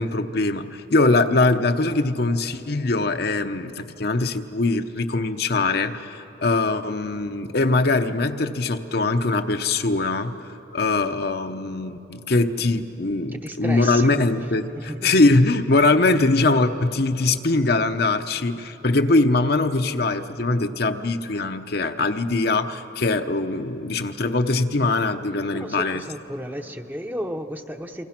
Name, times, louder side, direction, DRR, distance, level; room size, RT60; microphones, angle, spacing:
voice 1, 0.0-26.0, left 2 dB, 55° left, 7 dB, 0.8 m, -22 dB
voice 2, 13.3-14.1 14.7-15.1 25.5-28.1, equal, 10° right, 6 dB, 0.8 m, -33 dB
28.5 x 24.0 x 6.0 m, 2.9 s
head